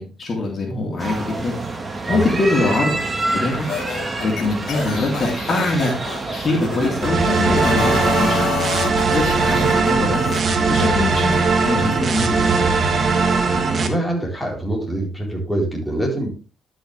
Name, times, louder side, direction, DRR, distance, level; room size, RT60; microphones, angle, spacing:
voice 1, 0.0-1.6 2.1-2.9 3.3-3.7 4.2-5.9 6.4-8.5 9.1-10.3 10.7-11.3 11.6-12.4, left 2 dB, 40° left, 0 dB, 3.2 m, -22 dB
sound 1, 1.0-8.5, right 2 dB, 25° right, 1.9 m, -27 dB
sound 2, 3.6-7.1 7.5-10.4, left 6 dB, 70° left, 2.2 m, -28 dB
sound 3, 7.0-13.9, right 4 dB, 45° right, 1.5 m, -19 dB
voice 2, 12.3-12.9 13.8-16.3, right 1 dB, ahead, -2 dB, 4.2 m, -25 dB
12.0 x 6.4 x 3.4 m, 0.33 s
cardioid pair, 90°, 0 cm